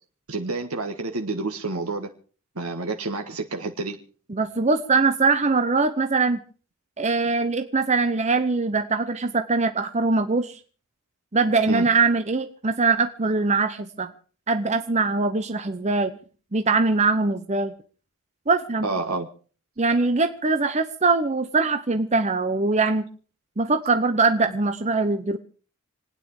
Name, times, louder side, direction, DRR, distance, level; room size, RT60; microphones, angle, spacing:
voice 1, 0.3-2.1 2.5-4.0 11.7-11.9 18.8-19.3, right 3 dB, 80° right, 4 dB, 1.5 m, -29 dB
voice 2, 4.3-6.4 7.0-10.6 11.3-14.1 14.5-16.1 16.5-17.7 18.5-18.9 19.8-23.1 23.6-25.4, right 3 dB, 30° right, 8 dB, 0.8 m, -22 dB
27.0 x 9.5 x 4.8 m, 0.39 s
head